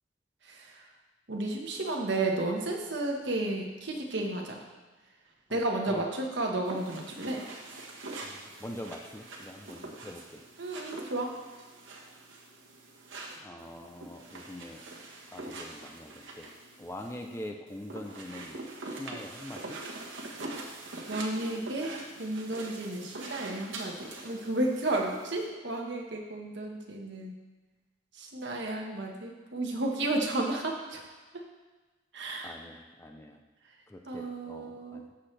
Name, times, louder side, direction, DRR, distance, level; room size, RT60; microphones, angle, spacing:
voice 1, 0.4-0.8 1.3-4.6 5.5-7.4 10.6-11.3 20.4-20.5 21.1-27.3 28.1-31.0 31.3-31.4 32.1-32.5 34.1-35.0, right 2 dB, 65° right, 0 dB, 1.4 m, -32 dB
sound 1, 6.7-25.5, right 2 dB, 80° right, 1.3 m, -44 dB
voice 2, 8.2-10.4 13.4-14.8 15.3-16.5 16.8-18.6 18.8-19.8 32.4-33.4 33.9-35.1, left 1 dB, 15° left, 3 dB, 0.5 m, -44 dB
14.5 x 6.0 x 3.3 m, 1.2 s
head